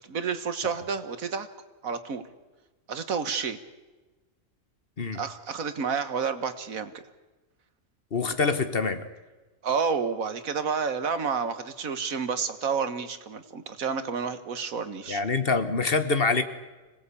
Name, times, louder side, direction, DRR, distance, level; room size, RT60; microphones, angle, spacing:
voice 1, 0.1-1.5 1.8-2.2 2.9-3.6 5.1-6.9 9.6-15.2, right 6 dB, 85° right, 10 dB, 1.8 m, -30 dB
voice 2, 8.1-9.1 15.1-16.4, left 4 dB, 45° left, 10 dB, 1.5 m, -25 dB
26.0 x 18.0 x 8.4 m, 1.2 s
omnidirectional pair, 1.4 m